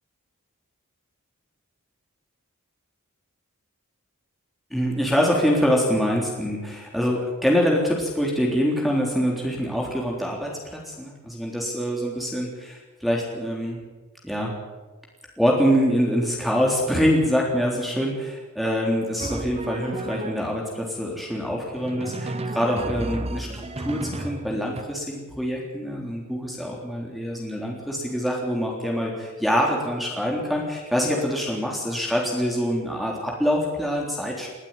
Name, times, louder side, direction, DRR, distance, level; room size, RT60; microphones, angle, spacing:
voice 1, 4.7-13.8 14.2-14.5 15.4-34.5, equal, ahead, -2 dB, 3.6 m, -25 dB
Drum, 19.2-20.7 21.8-24.8, right 2 dB, 30° right, 1.1 m, -33 dB
21.0 x 15.0 x 9.1 m, 1.2 s
head